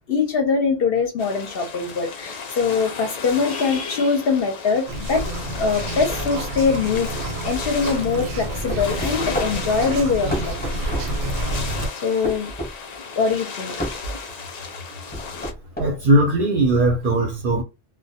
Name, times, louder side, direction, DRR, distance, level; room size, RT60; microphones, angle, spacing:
voice 1, 0.1-5.2 5.6-10.8 12.0-12.5 13.2-13.7, left 5 dB, 60° left, 0.7 m, -23 dB
sound 1, 1.2-15.5, left 5 dB, 90° left, 0.3 m, -34 dB
sound 2, 4.9-11.9, right 1 dB, 85° right, 0.9 m, -29 dB
sound 3, 8.7-9.5 10.3-11.1 12.2-12.7 13.8-14.0 15.1-15.9, equal, 10° left, 0.7 m, -28 dB
voice 2, 15.8-17.6, right 1 dB, 55° right, 0.6 m, -19 dB
2.2 x 2.1 x 2.7 m
omnidirectional pair, 1.3 m